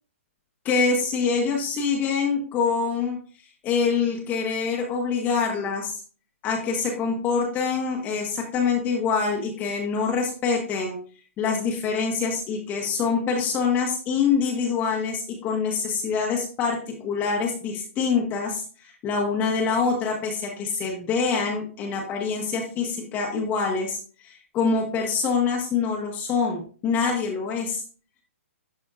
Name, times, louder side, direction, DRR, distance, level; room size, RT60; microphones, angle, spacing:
voice 1, 0.6-3.2 3.6-6.0 6.4-11.0 11.4-27.8, left 5 dB, 25° left, 0 dB, 1.2 m, -25 dB
11.5 x 4.2 x 2.5 m, 0.41 s
hypercardioid pair, 135°, 8 cm